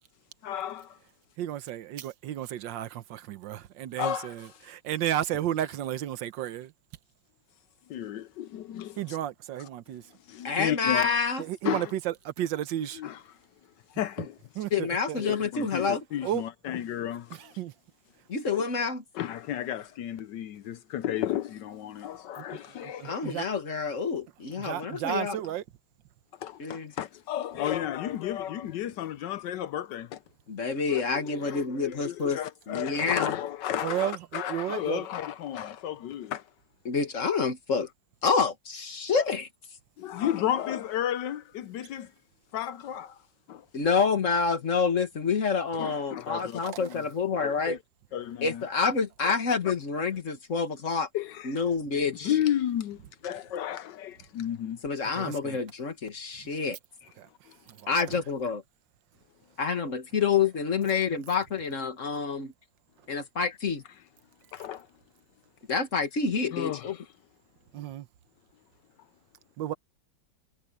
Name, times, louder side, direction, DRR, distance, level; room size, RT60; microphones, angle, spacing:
voice 1, 0.4-1.0 4.0-4.7 7.9-9.2 9.6-9.7 10.3-11.2 11.6-11.9 12.9-13.2 13.9-14.4 15.2-17.6 19.1-23.3 24.6-24.9 26.4-30.2 30.7-36.5 40.0-42.1 42.5-43.2 43.5-43.7 45.8-47.0 47.4-47.8 48.1-48.6 49.2-49.3 51.1-51.6 52.2-54.8 57.5-57.6 64.5-64.9 66.5-67.0, left 11 dB, 70° left, 1.2 m, -33 dB
voice 2, 1.4-6.7 9.0-10.0 11.4-13.0 14.6-15.2 16.2-16.4 17.4-17.7 22.4-22.6 23.0-23.4 24.6-25.6 33.8-35.1 46.4-46.7 55.1-55.6 57.2-57.3 57.7-57.9 67.7-68.1 69.6-69.7, right 12 dB, 75° right, 1.4 m, -33 dB
voice 3, 10.4-11.4 14.7-16.0 18.3-19.0 23.1-25.4 26.6-26.9 30.5-32.4 32.7-33.3 36.9-37.9 38.2-39.5 43.7-47.8 48.4-51.1 51.4-52.3 54.8-56.8 57.9-58.6 59.6-62.5 63.1-63.8 65.7-67.0, left 5 dB, 40° left, 2.0 m, -28 dB
omnidirectional pair, 2.1 m